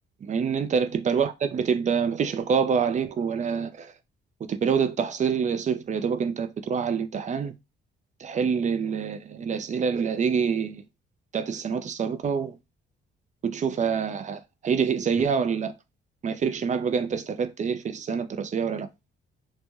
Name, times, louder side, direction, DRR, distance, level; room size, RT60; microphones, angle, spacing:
voice 1, 0.2-3.9 4.5-7.5 8.2-10.8 11.3-12.6 13.4-15.7 16.2-18.9, right 6 dB, 40° right, 0.4 m, -26 dB
2.6 x 2.2 x 3.1 m
cardioid pair, 90°, 20 cm